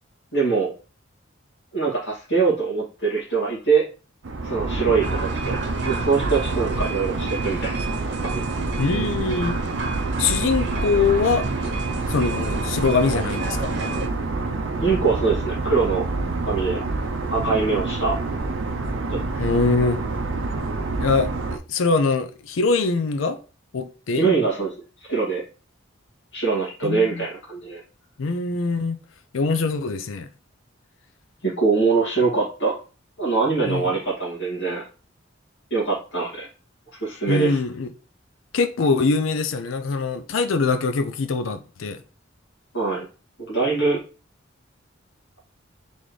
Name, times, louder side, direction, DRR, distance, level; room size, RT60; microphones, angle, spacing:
voice 1, 0.3-0.7 1.7-3.9 4.4-5.6 5.9-7.7 8.2-8.4 14.8-16.0 16.5-16.8 17.3-18.2 19.1-19.4 24.2-24.7 25.1-25.4 26.3-27.8 31.4-32.7 33.2-34.8 35.7-36.5 37.0-37.6 42.7-43.1 43.5-44.0, right 4 dB, 70° left, 2.1 m, -23 dB
sound 1, 4.2-21.6, right 3 dB, 85° right, 0.5 m, -27 dB
sound 2, 5.0-14.1, right 2 dB, 60° right, 0.9 m, -32 dB
voice 2, 8.8-9.6 10.2-11.5 12.1-13.7 19.4-20.0 21.0-23.4 23.7-24.3 26.8-27.2 28.2-29.0 29.3-30.3 33.7-33.9 37.3-37.9 38.5-42.0, left 4 dB, 85° left, 0.5 m, -23 dB
4.1 x 3.5 x 3.2 m
head